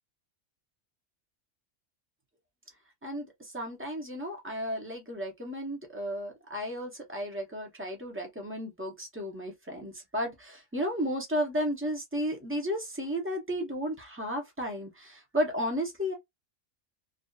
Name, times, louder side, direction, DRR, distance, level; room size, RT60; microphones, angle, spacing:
voice 1, 3.0-16.1, equal, 15° right, 0.5 m, -33 dB
2.6 x 2.3 x 2.2 m
omnidirectional pair, 1.4 m